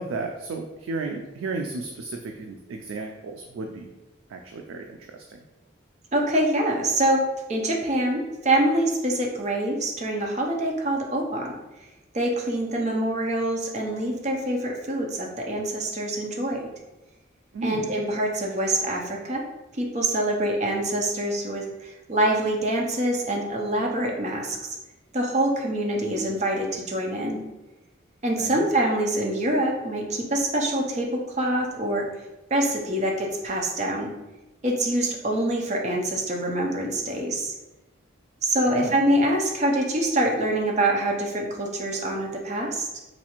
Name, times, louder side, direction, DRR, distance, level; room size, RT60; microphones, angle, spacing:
voice 1, 0.0-3.9 4.3-5.4 17.5-17.9 28.4-28.6 38.7-39.0, right 3 dB, 90° right, 3 dB, 0.3 m, -34 dB
voice 2, 6.1-7.2 7.5-11.9 12.1-16.7 17.6-19.4 19.7-24.8 25.1-27.4 28.2-32.1 32.5-34.1 34.6-37.5 38.4-43.0, right 1 dB, 35° right, 0 dB, 0.6 m, -25 dB
4.2 x 2.4 x 2.9 m, 1.1 s
head